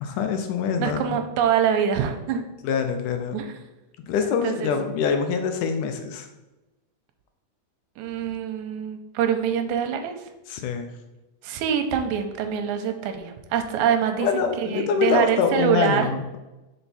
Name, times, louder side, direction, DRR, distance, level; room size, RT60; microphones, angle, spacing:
voice 1, 0.0-1.2 2.6-3.4 4.1-6.3 10.5-10.9 14.2-16.4, left 6 dB, 80° left, 6 dB, 2.1 m, -25 dB
voice 2, 0.8-2.4 3.3-3.6 4.4-4.7 8.0-10.2 11.4-16.1, right 8 dB, 80° right, 6 dB, 1.9 m, -25 dB
5.6 x 4.4 x 4.1 m, 1.0 s
omnidirectional pair, 3.7 m